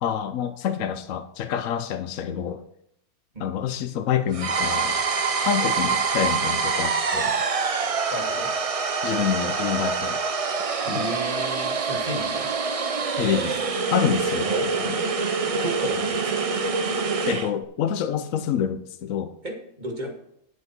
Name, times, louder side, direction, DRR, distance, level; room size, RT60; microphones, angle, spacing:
voice 1, 0.0-2.6 3.4-5.0 5.4-7.3 9.0-10.2 10.9-11.1 13.2-13.6 13.9-14.5 14.8-15.0 17.3-19.3, left 9 dB, 70° left, 9 dB, 1.0 m, -27 dB
sound 1, 4.3-17.5, right 5 dB, 45° right, 0.4 m, -25 dB
voice 2, 8.1-8.5 10.8-12.5 14.5-14.6 15.6-16.4 19.4-20.1, right 1 dB, 30° right, 2 dB, 2.0 m, -33 dB
10.0 x 8.8 x 4.5 m, 0.73 s
omnidirectional pair, 1.5 m